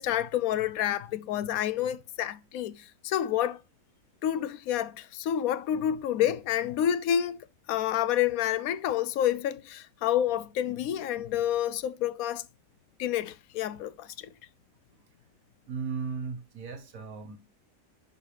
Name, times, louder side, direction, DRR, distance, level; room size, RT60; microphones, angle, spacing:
voice 1, 0.0-3.6 4.2-7.4 7.7-12.4 13.0-14.3, left 11 dB, 90° left, 1.1 m, -29 dB
voice 2, 15.7-17.4, right 5 dB, 75° right, 1.6 m, -36 dB
10.5 x 4.8 x 3.3 m
omnidirectional pair, 1.5 m